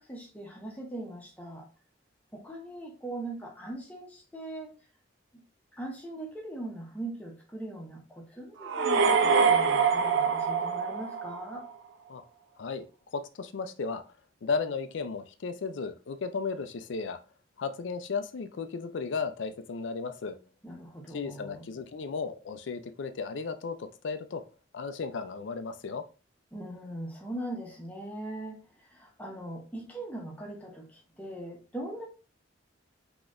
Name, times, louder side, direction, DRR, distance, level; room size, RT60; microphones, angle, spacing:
voice 1, 0.0-1.7 2.3-4.7 5.3-5.4 5.7-11.7 20.6-21.6 26.5-32.0, right 1 dB, 10° left, 0.9 m, -40 dB
sound 1, 8.6-11.7, right 5 dB, 90° right, 0.4 m, -25 dB
voice 2, 13.1-14.0 14.4-17.2 17.6-20.4 21.1-24.4 24.7-26.0, left 4 dB, 75° left, 0.4 m, -34 dB
3.9 x 2.9 x 2.5 m
head